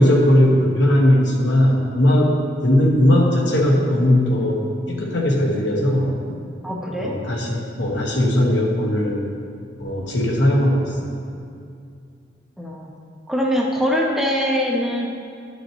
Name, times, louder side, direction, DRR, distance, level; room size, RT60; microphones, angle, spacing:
voice 1, 0.0-2.3 2.6-4.6 4.9-6.1 7.0-9.3 9.8-10.9, left 1 dB, 65° left, -2 dB, 1.4 m, -18 dB
voice 2, 6.6-7.1 12.6-12.9 13.3-15.1, equal, ahead, -2 dB, 0.7 m, -22 dB
11.5 x 6.4 x 3.1 m, 2.4 s
head